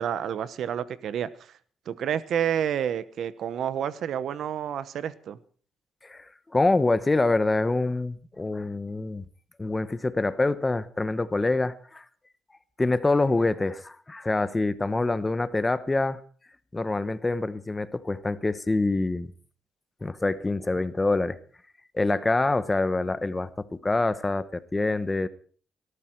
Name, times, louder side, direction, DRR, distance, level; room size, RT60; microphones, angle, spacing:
voice 1, 0.0-1.5 1.9-5.4, right 9 dB, 70° right, 16 dB, 1.0 m, -29 dB
voice 2, 6.5-9.2 9.6-12.0 12.8-16.2 16.7-19.3 20.0-21.4 21.9-25.3, left 2 dB, 20° left, 14 dB, 1.0 m, -25 dB
18.5 x 13.5 x 4.5 m, 0.43 s
cardioid pair, 90°, 0 cm